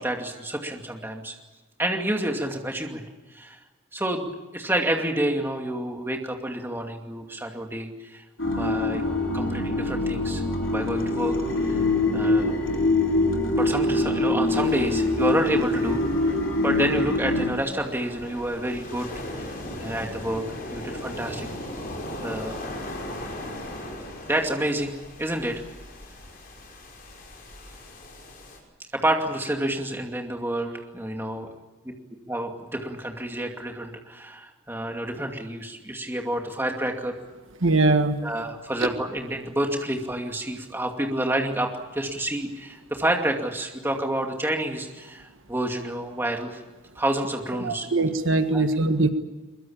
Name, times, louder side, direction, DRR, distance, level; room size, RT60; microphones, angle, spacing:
voice 1, 0.0-1.3 1.8-3.0 3.3-3.6 3.9-4.3 4.5-8.2 8.5-9.0 9.3-10.4 10.7-11.3 11.7-11.8 12.1-12.5 13.5-19.1 19.3-19.5 19.8-20.4 20.7-21.5 22.2-22.6 24.3-25.6 28.9-31.5 32.3-37.1 38.2-46.6 47.0-47.9 48.5-48.6, right 1 dB, 10° right, 2 dB, 2.4 m, -29 dB
sound 1, 8.4-17.5, left 2 dB, 70° left, 3.2 m, -24 dB
Organ, 8.4-17.6, equal, 5° left, 2.4 m, -37 dB
sound 2, 14.5-28.6, left 1 dB, 45° left, 5.8 m, -38 dB
voice 2, 37.6-38.2 47.6-49.1, right 2 dB, 70° right, 7 dB, 1.6 m, -21 dB
22.5 x 22.5 x 8.8 m, 1.2 s
head